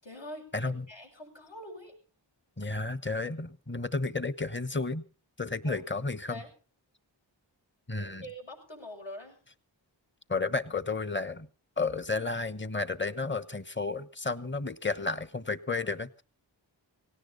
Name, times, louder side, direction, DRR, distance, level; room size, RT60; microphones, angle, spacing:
voice 1, 0.0-2.0 5.6-5.9 6.3-6.5 8.0-9.4, equal, 70° left, 1 dB, 6.9 m, -45 dB
voice 2, 0.5-0.8 2.6-5.0 5.4-6.4 7.9-8.2 10.3-11.5 11.8-16.2, left 3 dB, 25° left, 15 dB, 1.1 m, -32 dB
18.0 x 17.5 x 3.9 m, 0.36 s
wide cardioid pair, 55°, 46 cm